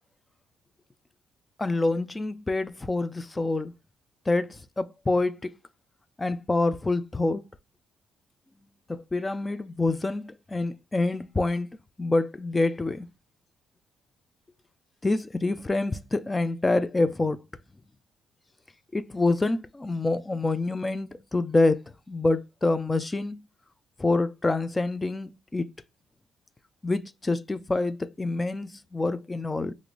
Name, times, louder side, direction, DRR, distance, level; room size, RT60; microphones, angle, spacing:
voice 1, 1.6-3.7 4.3-5.5 6.2-7.4 8.9-11.7 12.0-13.1 15.0-17.4 18.9-23.4 24.0-25.7 26.8-29.7, left 2 dB, 20° left, 0.4 m, -26 dB
3.7 x 2.6 x 3.1 m
cardioid pair, 90°, 0 cm